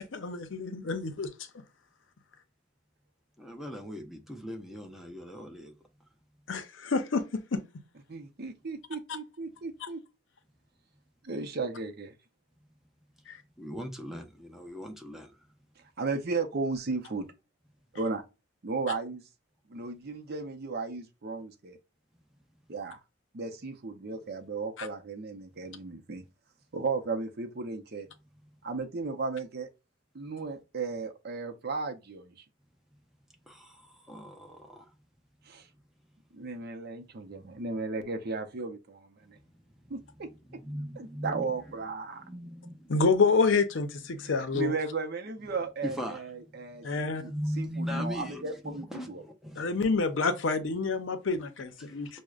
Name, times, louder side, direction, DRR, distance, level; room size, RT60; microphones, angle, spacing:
voice 1, 0.1-1.3 6.5-7.2 7.5-7.6 13.3-13.4 24.8-24.9 42.9-44.7 46.8-47.2 49.6-52.1, left 4 dB, 75° left, 0.6 m, -27 dB
voice 2, 3.4-5.8 13.6-15.3 33.5-34.9 39.3-41.4 42.1-43.0 44.1-44.5 45.8-49.8 51.8-51.9, equal, ahead, 0.6 m, -39 dB
voice 3, 8.1-10.0 11.2-12.1 16.0-17.3 17.9-18.2 18.6-19.2 19.7-21.8 22.7-23.0 23.3-26.2 26.7-28.1 28.6-29.7 30.1-32.4 35.5-35.7 36.3-39.4 39.9-40.3 41.0-42.2 44.4-49.2, right 4 dB, 55° right, 0.6 m, -35 dB
6.1 x 2.1 x 2.3 m
head